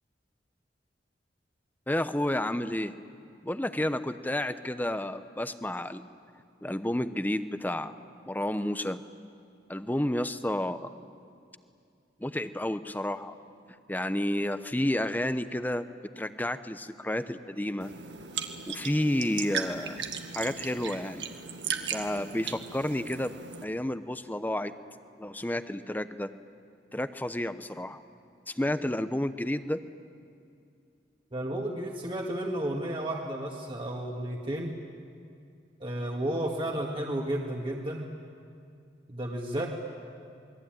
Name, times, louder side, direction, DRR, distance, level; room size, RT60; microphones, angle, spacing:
voice 1, 1.9-2.9 3.4-6.0 6.6-7.9 8.3-9.0 9.7-10.9 12.2-13.3 13.9-15.8 16.2-17.9 18.7-20.0 20.3-21.3 21.9-23.3 23.6-24.7 25.2-26.3 26.9-28.0 28.5-29.8, left 1 dB, 10° left, 11 dB, 0.8 m, -30 dB
sound 1, 17.8-23.6, right 6 dB, 85° right, 1.8 m, -37 dB
voice 2, 31.3-34.8 35.8-38.1 39.1-39.7, right 1 dB, 30° right, -1 dB, 2.0 m, -32 dB
28.0 x 21.5 x 9.1 m, 2.4 s
head